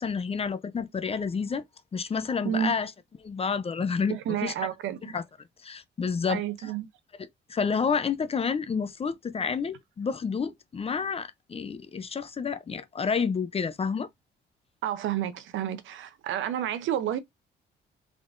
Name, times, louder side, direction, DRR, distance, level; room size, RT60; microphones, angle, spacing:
voice 1, 0.0-1.6 1.9-2.9 3.2-4.5 5.0-5.2 5.6-6.4 7.5-14.1, left 5 dB, 30° left, 0.5 m, -29 dB
voice 2, 2.4-2.7 4.1-5.2 6.3-6.9 14.8-17.2, right 10 dB, 75° right, 0.6 m, -30 dB
3.6 x 3.5 x 2.5 m
cardioid pair, 90°, 20 cm